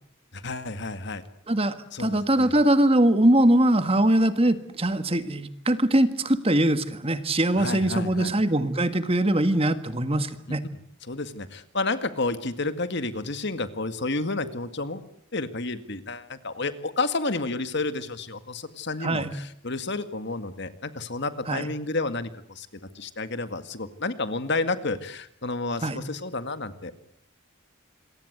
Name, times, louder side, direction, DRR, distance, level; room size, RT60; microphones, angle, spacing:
voice 1, 0.3-1.2 1.9-2.5 7.6-8.3 11.0-15.0 15.3-22.3 22.6-22.7 22.9-27.0, left 3 dB, 55° left, 11 dB, 2.0 m, -30 dB
voice 2, 1.5-10.6 19.0-19.3 21.5-21.7 25.8-26.0, right 1 dB, 30° right, 11 dB, 1.7 m, -22 dB
27.0 x 22.5 x 8.1 m, 0.65 s
head